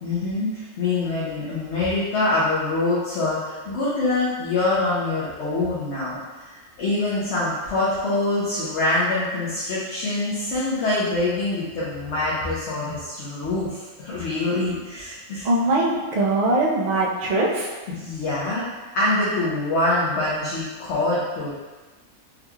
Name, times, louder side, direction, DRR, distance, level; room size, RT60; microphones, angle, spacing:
voice 1, 0.0-6.5 6.8-15.5 17.9-18.7 18.9-21.5, left 2 dB, 60° left, -9 dB, 1.0 m, -25 dB
voice 2, 15.4-17.7, right 2 dB, 55° right, -4 dB, 0.5 m, -21 dB
3.6 x 3.1 x 2.3 m, 1.3 s
omnidirectional pair, 1.5 m